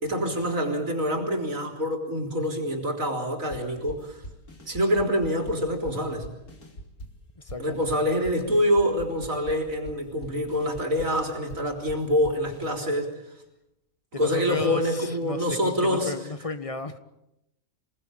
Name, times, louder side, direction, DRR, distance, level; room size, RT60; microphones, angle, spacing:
voice 1, 0.0-4.2 4.7-6.3 7.6-13.2 14.2-16.1, equal, 65° right, 4 dB, 4.2 m, -26 dB
sound 1, 3.5-12.7, right 1 dB, 85° left, 3.5 m, -43 dB
voice 2, 7.4-7.9 14.1-17.0, left 4 dB, 25° left, 10 dB, 1.5 m, -34 dB
27.5 x 19.5 x 8.8 m, 0.86 s
omnidirectional pair, 1.5 m